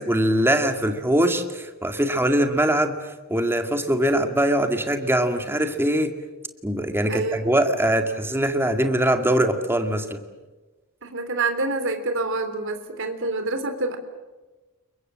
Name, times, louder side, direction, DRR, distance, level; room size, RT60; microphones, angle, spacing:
voice 1, 0.0-2.9 3.3-6.1 6.6-10.2, right 1 dB, 10° right, 6 dB, 2.1 m, -22 dB
voice 2, 7.1-7.6 11.0-14.0, right 3 dB, 60° right, 7 dB, 3.5 m, -27 dB
29.5 x 23.5 x 7.6 m, 1.2 s
head